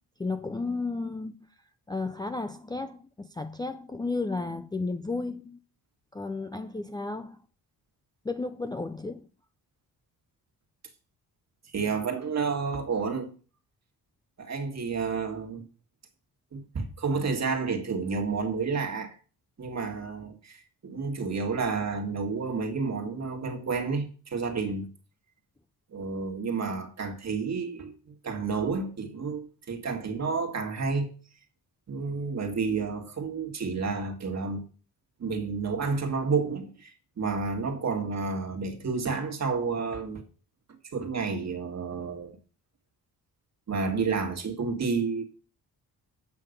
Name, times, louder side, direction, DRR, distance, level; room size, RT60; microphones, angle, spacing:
voice 1, 0.2-1.4 1.9-5.6 6.1-7.4 8.2-9.3, left 3 dB, 10° left, 0.4 m, -33 dB
voice 2, 11.7-13.3 14.4-15.7 16.5-19.1 19.6-24.9 25.9-27.9 28.2-31.1 31.9-34.6 35.2-40.2 40.9-42.4 43.7-45.2, right 4 dB, 45° right, 1.8 m, -30 dB
8.5 x 5.8 x 5.2 m
cardioid pair, 110°, 38 cm